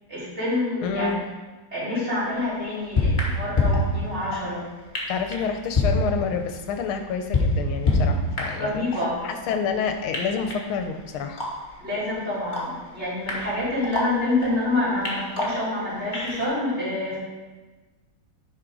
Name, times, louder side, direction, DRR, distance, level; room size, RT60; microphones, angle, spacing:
voice 1, 0.1-1.3 1.7-4.6 8.5-9.2 11.8-17.2, left 2 dB, 30° right, -9 dB, 3.6 m, -27 dB
voice 2, 0.8-1.2 5.1-8.9 9.2-11.4, left 6 dB, 80° left, 6 dB, 1.6 m, -28 dB
sound 1, 2.3-2.4 2.9-4.5 4.9-5.5 5.7-6.7 7.1-8.7 8.9-9.8 10.1-11.8 12.1-12.2 12.5-14.7 15.0-16.4, left 2 dB, 25° left, 1.4 m, -26 dB
9.9 x 5.2 x 4.8 m, 1.3 s
omnidirectional pair, 2.3 m